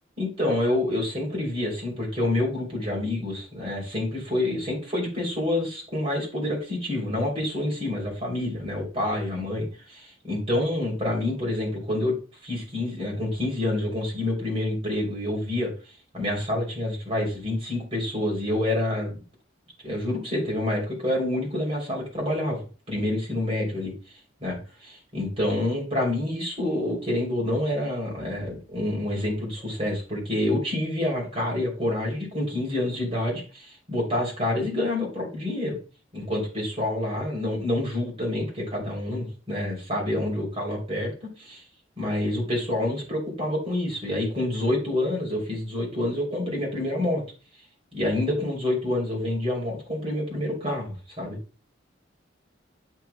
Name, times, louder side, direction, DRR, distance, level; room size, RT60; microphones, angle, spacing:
voice 1, 0.2-12.2 12.4-15.7 16.1-19.2 19.8-23.9 24.4-35.8 36.1-41.6 42.0-47.2 47.9-51.4, left 1 dB, 30° right, -1 dB, 3.1 m, -27 dB
8.3 x 6.0 x 2.2 m, 0.35 s
head